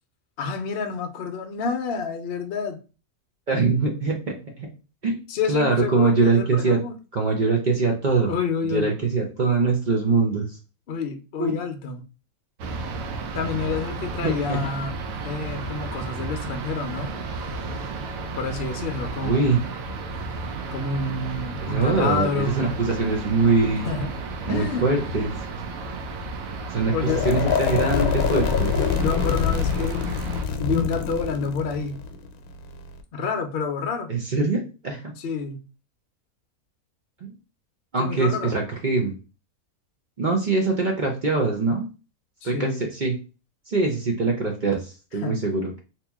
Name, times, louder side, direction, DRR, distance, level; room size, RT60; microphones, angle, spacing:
voice 1, 0.4-2.8 5.3-6.9 8.3-8.9 10.9-12.0 13.3-15.0 15.2-17.1 18.4-19.5 20.7-22.7 23.8-24.1 24.5-24.9 26.9-27.3 29.0-30.0 30.6-32.0 33.1-34.1 35.2-35.6 38.0-38.5 42.4-42.9 45.2-45.4, left 5 dB, 55° left, 5 dB, 0.7 m, -28 dB
voice 2, 3.5-4.7 5.0-5.2 5.5-6.8 7.1-8.3 8.7-10.6 11.4-11.6 14.2-14.7 19.2-19.6 21.6-23.9 24.4-25.3 26.7-26.9 27.2-28.7 34.1-35.1 37.9-39.1 40.2-41.9 42.4-43.2 43.7-45.8, right 3 dB, 50° right, 0 dB, 0.5 m, -23 dB
sound 1, 12.6-30.4, right 3 dB, 75° right, 1.0 m, -33 dB
sound 2, 27.0-33.0, left 6 dB, 85° left, 1.1 m, -25 dB
2.9 x 2.8 x 3.4 m, 0.32 s
omnidirectional pair, 1.5 m